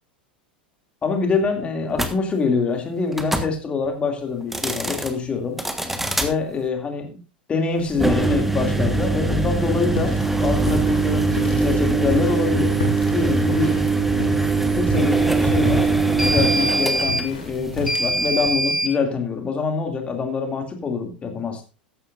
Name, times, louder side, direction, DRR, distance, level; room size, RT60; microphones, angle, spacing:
voice 1, 1.0-5.6 6.2-7.2 7.5-10.1 10.4-12.8 13.1-13.7 14.7-15.9 16.2-21.6, left 5 dB, 20° left, 4 dB, 2.6 m, -25 dB
sound 1, 1.9-2.1 3.1-3.5 4.4-5.1 5.6-6.3 7.9-18.9, right 3 dB, 5° right, 1.5 m, -21 dB
sound 2, 9.5-10.3 10.6-11.7 12.0-14.6 14.9-15.2 15.5-18.3, left 3 dB, 70° left, 2.6 m, -31 dB
14.5 x 11.5 x 2.6 m, 0.32 s
figure-of-eight pair, 85°, 5 cm